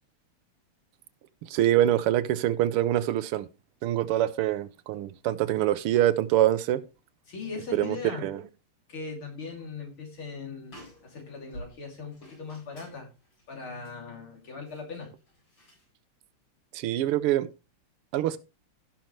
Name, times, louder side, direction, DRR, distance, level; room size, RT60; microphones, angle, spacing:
voice 1, 1.5-3.5 3.8-6.8 7.7-8.0 8.2-8.4 16.7-17.5 18.1-18.4, right 13 dB, 85° right, 1.6 m, -25 dB
voice 2, 7.3-8.3 8.9-13.1 13.5-15.1, left 4 dB, 70° left, 3.7 m, -39 dB
sound 1, 9.4-9.9 10.2-10.3 10.6-15.9, equal, 90° left, 8.3 m, -51 dB
16.5 x 5.9 x 3.2 m
omnidirectional pair, 2.4 m